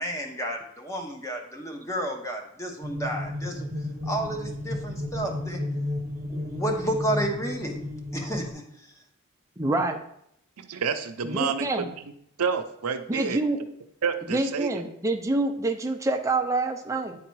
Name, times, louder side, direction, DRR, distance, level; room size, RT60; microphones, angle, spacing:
voice 1, 0.0-3.6 4.0-5.6 6.3-7.8 8.1-8.6, right 1 dB, 15° left, 2 dB, 1.0 m, -31 dB
sound 1, 2.8-8.5, left 1 dB, 40° right, 0.9 m, -33 dB
voice 2, 9.6-10.0 11.2-11.9 13.1-13.6 14.3-17.1, right 2 dB, 15° right, 3 dB, 0.6 m, -26 dB
voice 3, 10.6-11.8 12.4-13.4 14.0-14.8, right 6 dB, 90° right, 8 dB, 0.6 m, -29 dB
9.4 x 3.8 x 4.7 m, 0.72 s
head